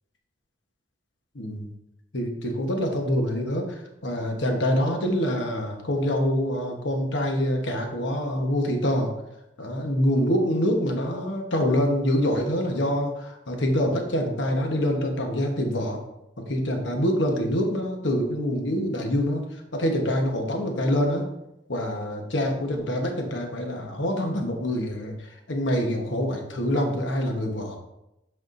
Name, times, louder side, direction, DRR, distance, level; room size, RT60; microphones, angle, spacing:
voice 1, 1.3-1.7 2.1-9.1 9.6-16.0 16.4-21.3 21.7-27.8, equal, 80° left, 2 dB, 1.2 m, -25 dB
8.0 x 5.7 x 2.6 m, 0.87 s
head